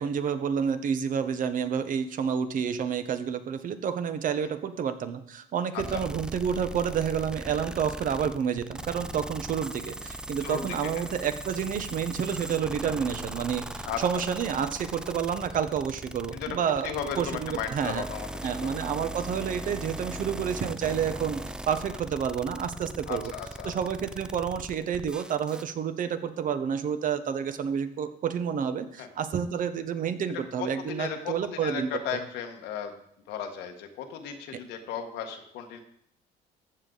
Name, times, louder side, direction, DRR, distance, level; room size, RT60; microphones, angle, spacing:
voice 1, 0.0-18.1 18.4-23.3 23.6-32.2 34.5-34.6, right 7 dB, 50° right, 10 dB, 0.9 m, -29 dB
sound 1, 5.8-25.6, right 1 dB, 5° right, 0.3 m, -39 dB
voice 2, 10.4-11.1 13.9-14.0 16.3-16.6 16.8-18.3 18.5-18.7 23.1-23.7 29.0-29.1 30.6-32.9 33.3-35.8, left 8 dB, 90° left, 5 dB, 1.4 m, -35 dB
14.0 x 6.6 x 3.9 m, 0.72 s
cardioid pair, 110°, 17 cm